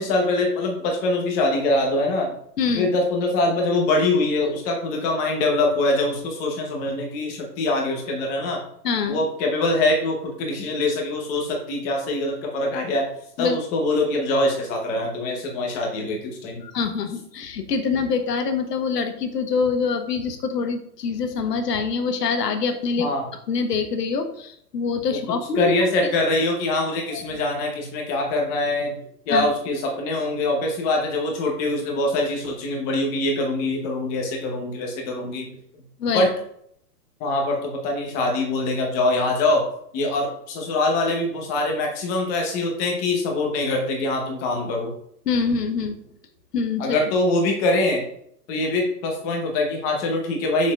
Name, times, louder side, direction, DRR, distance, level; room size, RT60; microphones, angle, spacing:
voice 1, 0.0-2.4 2.7-8.6 9.1-13.0 13.4-16.6 23.0-23.3 25.6-28.9 29.3-35.5 36.1-36.3 37.2-39.6 39.9-44.9 46.8-48.0 48.5-50.7, left 2 dB, 15° left, 1 dB, 0.9 m, -23 dB
voice 2, 2.6-2.9 8.8-9.2 13.4-13.6 16.6-23.1 23.5-25.7 27.1-27.2 29.3-29.5 36.0-36.3 45.2-46.0 46.5-47.0, left 5 dB, 80° left, 7 dB, 1.2 m, -25 dB
6.6 x 6.0 x 2.4 m, 0.69 s
hypercardioid pair, 160°, 48 cm